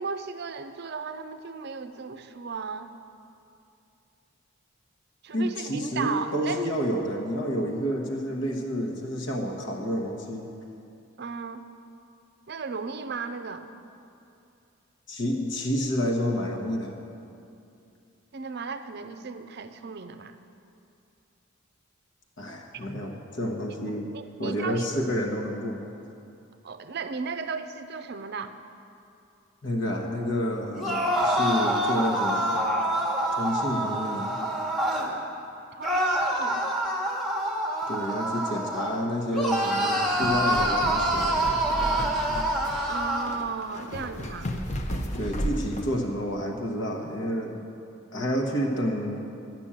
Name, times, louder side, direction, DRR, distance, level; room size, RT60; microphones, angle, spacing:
voice 1, 0.0-2.9 5.2-6.6 11.2-11.6 12.5-13.7 18.3-20.4 22.8-22.9 24.1-24.9 26.6-28.6 35.7-36.6 42.9-44.5, right 5 dB, 50° right, 10 dB, 0.5 m, -35 dB
voice 2, 5.3-10.5 15.1-17.0 22.4-24.1 24.4-25.8 29.6-32.6 33.3-34.4 37.9-41.7 45.2-47.6 48.1-49.2, equal, 60° left, 1 dB, 1.2 m, -29 dB
sound 1, 30.7-35.1 35.8-39.0 39.3-43.3, right 1 dB, ahead, 1.1 m, -26 dB
sound 2, 39.9-46.0, equal, 35° left, 0.8 m, -33 dB
11.5 x 6.1 x 8.8 m, 2.6 s
head